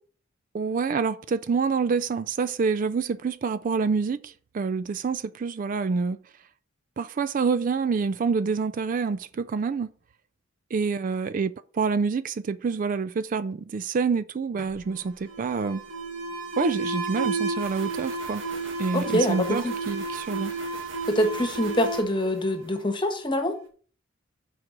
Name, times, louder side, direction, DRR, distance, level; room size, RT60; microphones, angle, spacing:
voice 1, 0.5-6.2 7.0-9.9 10.7-15.8 16.6-18.4 18.8-20.5, right 5 dB, 45° right, 0.3 m, -27 dB
Alarm, 14.6-23.2, right 3 dB, 70° right, 1.8 m, -32 dB
voice 2, 18.9-19.7 21.1-23.5, left 1 dB, 25° left, 1.3 m, -25 dB
6.8 x 4.7 x 6.5 m
head